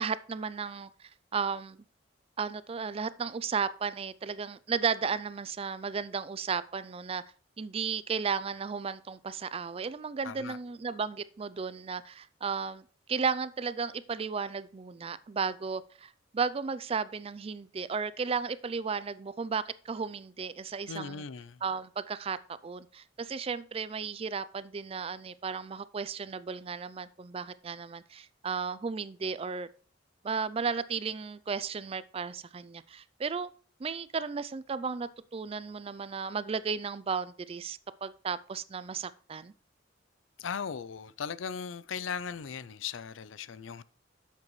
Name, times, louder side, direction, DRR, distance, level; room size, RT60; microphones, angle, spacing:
voice 1, 0.0-1.8 2.4-7.2 7.6-21.2 21.6-22.4 22.6-29.7 30.2-33.5 33.8-39.5, right 5 dB, 30° right, 0.4 m, -34 dB
voice 2, 10.2-10.6 20.9-21.6 40.4-43.8, left 6 dB, 90° left, 0.5 m, -38 dB
9.5 x 7.4 x 3.2 m
head